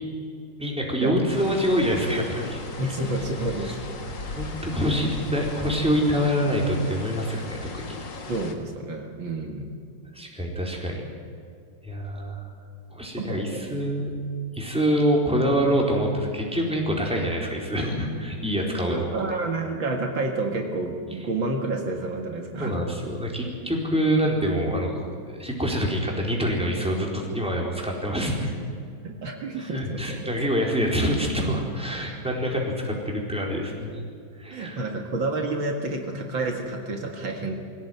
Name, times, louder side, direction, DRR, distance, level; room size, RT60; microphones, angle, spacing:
voice 1, 0.6-2.6 3.6-3.7 4.3-7.8 10.1-11.0 11.8-12.4 12.9-14.2 14.5-18.9 22.6-28.5 29.6-33.9 34.4-34.9, equal, 5° right, -1 dB, 4.1 m, -26 dB
sound 1, 1.3-8.6, left 2 dB, 60° left, 2.7 m, -37 dB
voice 2, 2.8-3.7 8.3-9.7 13.2-14.1 18.9-22.9 29.0-30.3 34.5-37.6, right 2 dB, 65° right, 2 dB, 2.6 m, -29 dB
23.5 x 17.0 x 9.4 m, 2.3 s
omnidirectional pair, 2.3 m